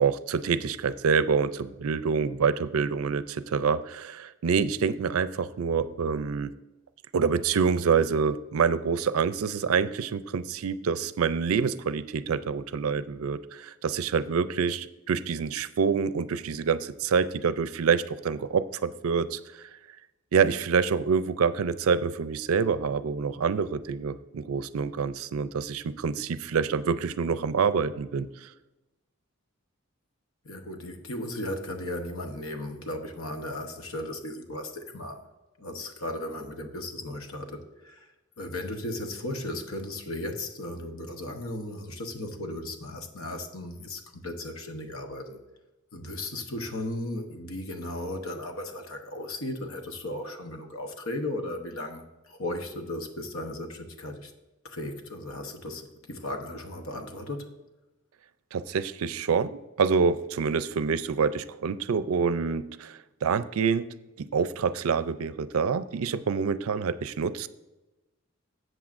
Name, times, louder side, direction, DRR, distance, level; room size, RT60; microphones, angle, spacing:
voice 1, 0.0-6.5 7.1-19.4 20.3-28.5 58.5-63.9 64.2-67.5, right 6 dB, 85° right, 14 dB, 0.4 m, -26 dB
voice 2, 30.4-35.3 35.6-38.1 38.4-45.4 45.9-54.3 54.6-57.5, left 1 dB, 80° left, 5 dB, 1.0 m, -36 dB
13.0 x 7.9 x 2.5 m, 1.1 s
head